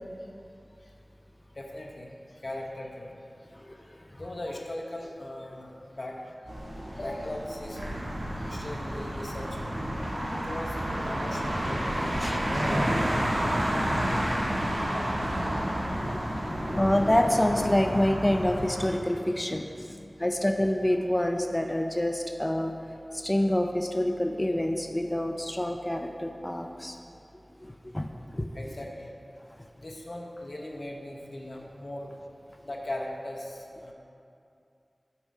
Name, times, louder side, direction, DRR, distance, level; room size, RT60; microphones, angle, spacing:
voice 1, 1.5-3.2 4.1-6.2 6.9-7.9 8.4-9.7 10.3-10.8 11.1-13.7 14.6-15.2 28.5-29.1 29.8-32.1 32.6-33.9, left 1 dB, 55° left, -1 dB, 0.9 m, -39 dB
sound 1, 6.4-17.7, equal, 70° right, 1.9 m, -40 dB
sound 2, 7.7-18.9, equal, 85° right, 1.4 m, -30 dB
voice 2, 15.9-16.2 16.5-22.7 23.1-27.0 27.6-28.5, left 1 dB, 20° left, 5 dB, 0.4 m, -27 dB
7.0 x 4.7 x 5.4 m, 2.5 s
wide cardioid pair, 60°, 0 cm